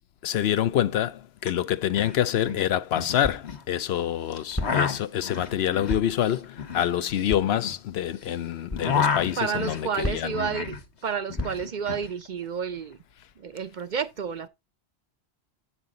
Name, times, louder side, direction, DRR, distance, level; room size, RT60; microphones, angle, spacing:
voice 1, 0.2-10.4, left 11 dB, 70° left, 0.8 m, -26 dB
sound 1, 1.4-1.5 1.8-2.1 2.4-3.6 4.3-8.3 8.6-10.8 11.1-12.1, left 6 dB, 90° left, 1.6 m, -30 dB
sound 2, 3.2-3.6 4.5-5.0 5.9-6.3 7.3-7.6 8.7-8.9 10.0-10.5 11.4-11.8, left 1 dB, 15° left, 0.6 m, -33 dB
voice 2, 9.4-10.7 11.0-13.0 13.4-14.5, right 6 dB, 55° right, 0.6 m, -30 dB
8.6 x 5.8 x 3.7 m
omnidirectional pair, 1.1 m